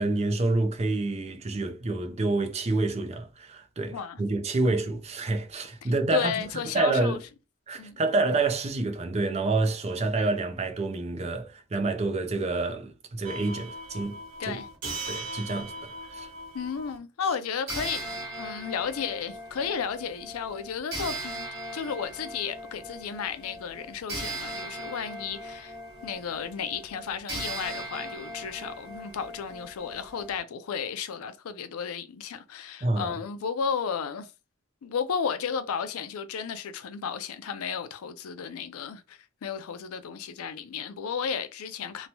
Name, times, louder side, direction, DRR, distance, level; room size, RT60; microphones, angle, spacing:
voice 1, 0.0-6.3 6.7-7.2 7.7-14.2 14.5-14.6 15.1-16.3 32.8-33.1, right 2 dB, 30° right, 0.4 m, -28 dB
voice 2, 5.8-7.2 7.7-8.0 14.4-14.7 16.5-21.5 21.7-25.8 26.0-34.3 34.8-42.1, left 6 dB, 80° left, 0.4 m, -33 dB
sound 1, 13.2-17.0 17.7-30.4, right 1 dB, 75° right, 1.3 m, -39 dB
3.0 x 2.2 x 2.7 m
head